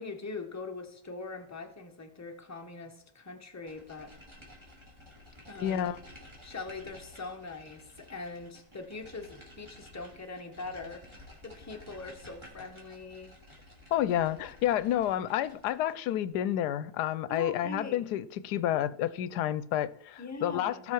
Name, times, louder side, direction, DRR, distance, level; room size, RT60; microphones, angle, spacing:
voice 1, 0.0-4.1 5.5-6.0 6.4-13.4 17.3-18.0 20.2-20.9, left 3 dB, 10° left, 1.0 m, -42 dB
sound 1, 3.7-16.0, left 1 dB, 15° right, 3.0 m, -53 dB
voice 2, 5.6-6.0 13.9-20.9, left 11 dB, 80° left, 1.1 m, -30 dB
17.5 x 5.9 x 4.6 m
omnidirectional pair, 1.7 m